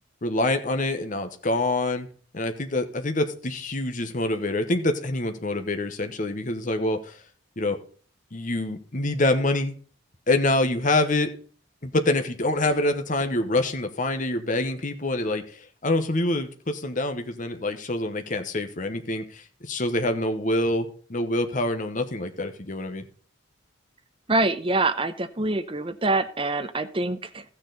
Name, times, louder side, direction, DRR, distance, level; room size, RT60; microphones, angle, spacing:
voice 1, 0.2-2.1 2.3-7.1 7.6-7.8 8.3-9.7 10.3-11.3 11.8-23.0, left 2 dB, 40° left, 7 dB, 1.0 m, -26 dB
voice 2, 24.3-27.4, right 2 dB, 25° right, 9 dB, 0.8 m, -25 dB
14.5 x 6.6 x 3.9 m, 0.42 s
head